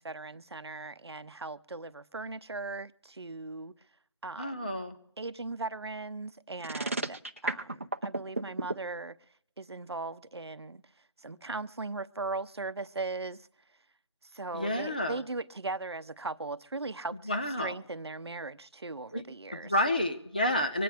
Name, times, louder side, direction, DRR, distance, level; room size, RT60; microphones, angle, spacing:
voice 1, 0.0-3.7 4.2-4.7 5.2-9.2 9.6-10.8 11.2-13.4 14.3-17.3 17.6-19.7, right 3 dB, 65° right, 0.8 m, -38 dB
voice 2, 4.4-5.0 14.5-15.2 17.3-17.7 19.1-19.2 19.5-20.8, left 1 dB, 20° left, 0.7 m, -30 dB
sound 1, 6.6-8.7, right 2 dB, 30° right, 0.7 m, -32 dB
25.5 x 9.2 x 3.4 m
figure-of-eight pair, 175°, 15 cm